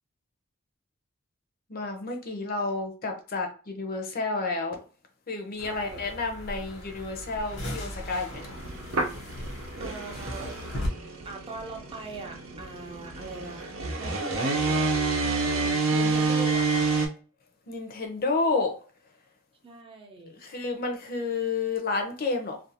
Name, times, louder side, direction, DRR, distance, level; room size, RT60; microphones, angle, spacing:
voice 1, 1.7-4.8 5.3-8.6 17.7-18.8 20.3-22.6, left 3 dB, 45° left, 0.6 m, -30 dB
sound 1, 5.6-10.9, left 1 dB, 80° left, 1.0 m, -38 dB
voice 2, 5.6-6.0 9.4-9.5 9.8-10.6 11.2-15.1 15.4-16.9 19.6-20.4, right 3 dB, 25° right, 0.5 m, -41 dB
sound 2, 8.3-17.1, right 3 dB, 80° right, 0.7 m, -28 dB
2.5 x 2.3 x 2.7 m
head